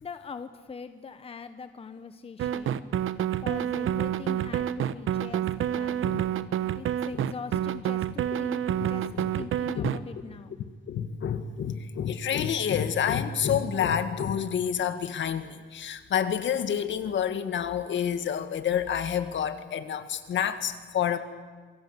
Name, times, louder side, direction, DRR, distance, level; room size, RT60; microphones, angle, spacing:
voice 1, 0.0-2.8 3.4-5.4 5.7-6.0 6.7-10.6, left 5 dB, 30° left, 10 dB, 1.1 m, -42 dB
sound 1, 2.4-10.0, right 10 dB, 85° right, 1.0 m, -28 dB
voice 2, 10.9-21.2, left 8 dB, 65° left, 9 dB, 1.9 m, -28 dB
27.5 x 23.0 x 8.2 m, 1.4 s
cardioid pair, 150°, 20 cm